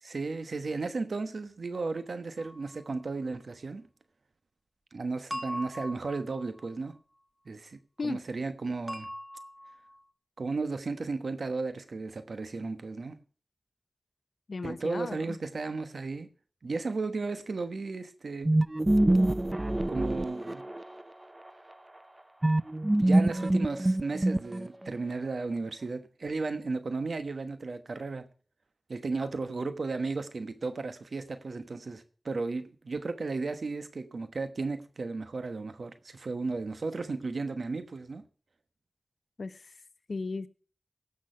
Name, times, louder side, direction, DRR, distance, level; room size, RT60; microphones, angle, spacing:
voice 1, 0.0-3.8 4.9-6.9 7.5-9.1 10.4-13.2 14.6-16.3 16.6-18.6 19.9-20.6 23.0-28.3 28.9-38.2, right 3 dB, 80° right, 1.1 m, -34 dB
sound 1, 2.4-2.8 5.3-6.9 8.9-10.0, equal, 5° right, 1.3 m, -41 dB
voice 2, 14.5-15.4 29.6-29.7 39.4-39.7 40.1-40.5, left 3 dB, 75° left, 0.7 m, -36 dB
sound 2, 18.5-21.0 22.4-24.9, right 1 dB, 25° right, 0.4 m, -25 dB
16.5 x 6.3 x 5.5 m
wide cardioid pair, 50°, 0 cm